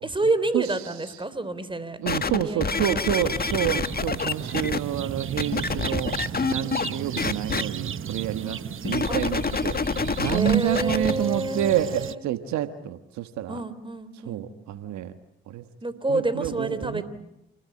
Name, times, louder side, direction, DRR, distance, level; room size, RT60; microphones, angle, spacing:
voice 1, 0.0-2.0 2.3-3.1 6.6-6.9 8.4-8.7 9.1-9.2 10.3-12.2 13.5-14.5 15.8-17.0, right 2 dB, 15° right, 14 dB, 3.5 m, -29 dB
voice 2, 2.0-6.1 6.5-9.8 10.2-13.6 14.3-15.1 15.5-15.6 16.1-17.0, right 11 dB, 75° right, 9 dB, 1.4 m, -28 dB
sound 1, 2.1-4.8 5.4-6.9 7.2-7.6 8.8-11.1 11.8-11.9, left 4 dB, 30° left, 1.6 m, -27 dB
sound 2, 3.2-12.1, right 8 dB, 45° right, 1.0 m, -35 dB
28.5 x 20.5 x 8.5 m, 0.86 s
hypercardioid pair, 50°, 29 cm